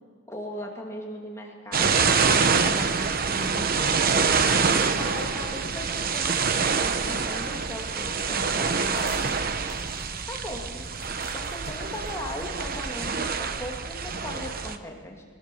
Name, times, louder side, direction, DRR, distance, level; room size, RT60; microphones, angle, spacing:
voice 1, 0.3-3.9 4.8-9.4 10.3-10.9 11.3-15.2, left 1 dB, 15° left, -1 dB, 2.4 m, -38 dB
sound 1, 1.7-14.8, right 5 dB, 45° right, 0.9 m, -26 dB
sound 2, 8.7-13.8, equal, 15° right, 6.0 m, -50 dB
21.5 x 19.0 x 7.0 m, 1.5 s
head